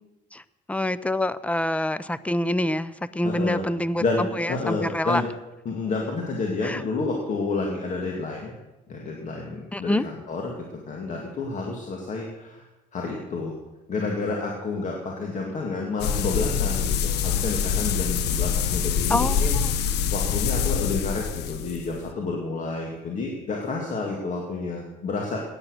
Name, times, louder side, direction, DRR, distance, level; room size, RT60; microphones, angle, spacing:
voice 1, 0.7-5.2 6.6-6.8 9.7-10.0 19.1-19.7, left 1 dB, 10° left, 17 dB, 0.6 m, -26 dB
voice 2, 3.2-3.6 4.0-5.3 5.7-8.5 8.9-12.6 12.9-13.6 13.9-19.5 20.1-25.4, left 3 dB, 45° left, 0 dB, 2.3 m, -30 dB
sound 1, 16.0-22.0, left 7 dB, 80° left, 1.1 m, -25 dB
16.0 x 9.7 x 6.5 m, 1.1 s
cardioid pair, 110°, 17 cm